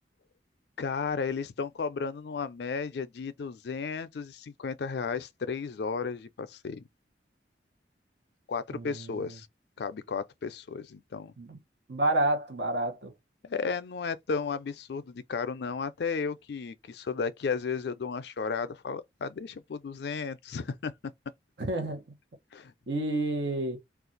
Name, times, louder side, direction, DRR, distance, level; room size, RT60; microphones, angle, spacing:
voice 1, 0.8-6.9 8.5-9.5 9.8-11.3 13.4-20.9 22.5-22.7, left 5 dB, 70° left, 0.4 m, -34 dB
voice 2, 8.7-9.4 11.4-11.6 11.9-13.1 21.6-22.0 22.9-23.8, right 2 dB, 70° right, 0.9 m, -29 dB
2.5 x 2.3 x 3.9 m
head